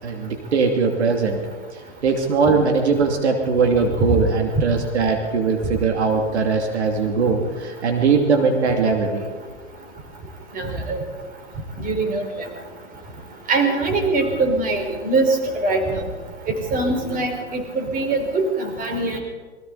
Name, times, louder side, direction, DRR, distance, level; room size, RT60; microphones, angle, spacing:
voice 1, 0.0-1.4 1.7-9.3, right 4 dB, 70° right, 2 dB, 2.9 m, -20 dB
voice 2, 10.5-11.0 11.8-12.2 13.5-16.0 16.7-19.2, right 3 dB, 25° right, 3 dB, 4.9 m, -22 dB
28.0 x 23.0 x 4.2 m, 1.5 s
hypercardioid pair, 115°, 35 cm